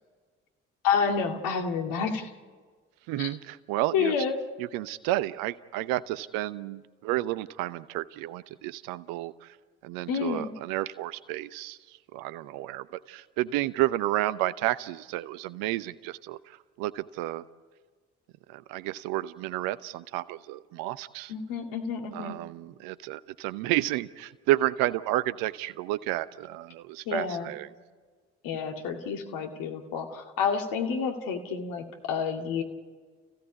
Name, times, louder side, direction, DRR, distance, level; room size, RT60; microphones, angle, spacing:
voice 1, 0.8-2.3 3.2-3.3 3.9-4.4 10.1-10.5 21.3-22.4 27.1-27.5 28.4-32.6, left 6 dB, 70° left, 4 dB, 2.2 m, -29 dB
voice 2, 3.1-4.2 4.6-9.5 9.8-17.4 18.5-21.3 22.1-27.7, right 16 dB, 75° right, 16 dB, 0.8 m, -31 dB
30.0 x 16.0 x 8.3 m, 1.5 s
hypercardioid pair, 40°, 35 cm